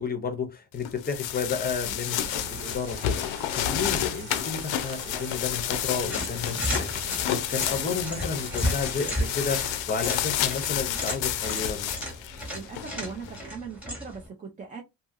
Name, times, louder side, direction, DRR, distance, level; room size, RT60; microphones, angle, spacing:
voice 1, 0.0-11.9, left 5 dB, 20° left, 0.6 m, -32 dB
sound 1, 0.8-13.4, left 11 dB, 70° left, 0.6 m, -30 dB
sound 2, 2.0-9.7, right 4 dB, 60° right, 0.9 m, -43 dB
sound 3, 6.0-14.3, equal, 5° right, 1.0 m, -34 dB
voice 2, 12.5-14.8, right 5 dB, 20° right, 0.4 m, -39 dB
2.7 x 2.7 x 2.4 m
cardioid pair, 155°, 48 cm